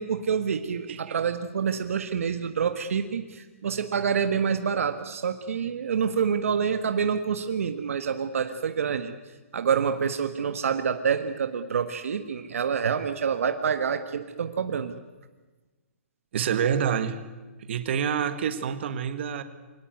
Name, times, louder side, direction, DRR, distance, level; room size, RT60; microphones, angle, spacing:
voice 1, 0.0-9.1 9.5-14.9, right 6 dB, 75° right, 8 dB, 1.6 m, -27 dB
voice 2, 16.3-17.2 17.7-19.4, right 8 dB, 55° right, 10 dB, 2.0 m, -27 dB
24.5 x 18.0 x 9.3 m, 1.2 s
hypercardioid pair, 160°, 8 cm